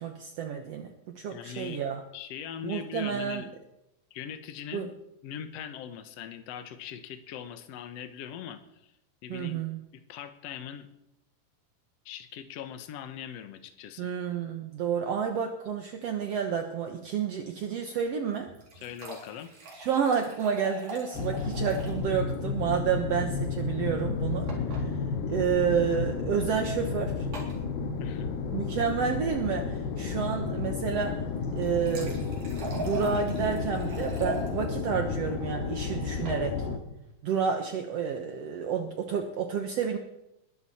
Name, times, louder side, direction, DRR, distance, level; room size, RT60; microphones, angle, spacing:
voice 1, 0.0-2.0 2.6-3.5 4.7-4.9 9.3-9.8 14.0-18.5 19.7-24.9 25.3-27.3 28.5-31.2 31.6-32.2 32.6-36.7 37.2-40.0, right 7 dB, 75° right, 4 dB, 1.5 m, -30 dB
voice 2, 1.3-1.8 2.1-3.5 4.1-4.9 5.2-8.9 9.2-9.6 10.1-10.9 12.1-14.1 18.8-19.5 28.0-28.3, left 9 dB, 65° left, 8 dB, 1.6 m, -41 dB
sound 1, 18.3-22.0 22.3-22.4 22.7-22.8 24.5-24.8 25.8-26.0 27.3-27.6 31.4-34.5 35.9-36.4, right 2 dB, 55° right, 5.3 m, -41 dB
sound 2, 21.1-36.8, left 4 dB, 90° left, 3.4 m, -32 dB
21.5 x 13.0 x 4.3 m, 0.86 s
omnidirectional pair, 4.4 m